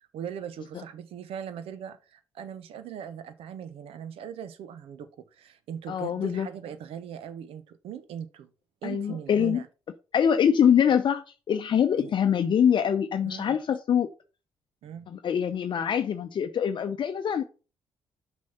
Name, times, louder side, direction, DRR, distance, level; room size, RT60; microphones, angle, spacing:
voice 1, 0.1-8.5 8.8-9.7 12.0-12.1 13.2-13.6 14.8-15.1, right 8 dB, 65° right, 1.0 m, -40 dB
voice 2, 5.9-6.5 8.8-9.6 10.1-14.1 15.1-17.4, left 8 dB, 50° left, 0.7 m, -24 dB
6.3 x 5.4 x 5.6 m
hypercardioid pair, 45°, 11 cm